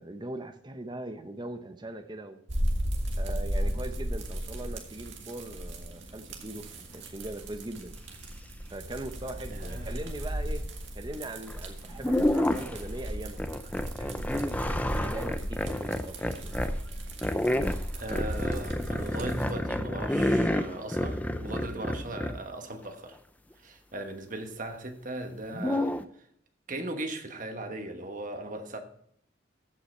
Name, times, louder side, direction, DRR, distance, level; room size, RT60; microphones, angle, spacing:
voice 1, 0.0-2.4 3.2-8.0 8.7-10.7 10.9-13.4 14.0-16.6, right 1 dB, 25° right, 0.8 m, -40 dB
sound 1, 2.5-19.5, equal, 75° right, 1.9 m, -35 dB
voice 2, 9.5-10.1 15.0-15.1 17.9-23.2 23.6-26.0 26.7-28.8, right 1 dB, 45° right, 1.2 m, -38 dB
sound 2, 11.5-11.6 12.0-12.9 13.4-16.8 17.2-22.4 25.5-26.0, left 1 dB, 10° left, 0.5 m, -29 dB
14.5 x 5.7 x 4.3 m
head